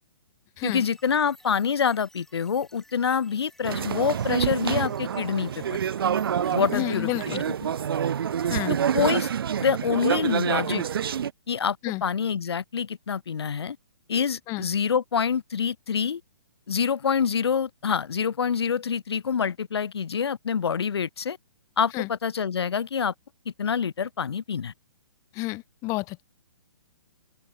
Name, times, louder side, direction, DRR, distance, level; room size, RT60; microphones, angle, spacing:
voice 1, 0.6-5.6 6.5-7.7 8.9-9.3 9.6-10.8 11.5-13.8 14.1-16.2 16.7-21.4 21.8-23.1 23.6-24.7, left 7 dB, 80° left, 0.4 m, -26 dB
sound 1, 0.6-7.5, left 1 dB, ahead, 2.9 m, -56 dB
sound 2, 3.6-11.3, right 8 dB, 65° right, 0.8 m, -27 dB
voice 2, 6.7-7.4 8.5-8.8 11.8-12.0 14.5-14.7 21.9-22.1 25.3-26.2, left 23 dB, 25° left, 0.6 m, -30 dB
open air
figure-of-eight pair, 130°, 13 cm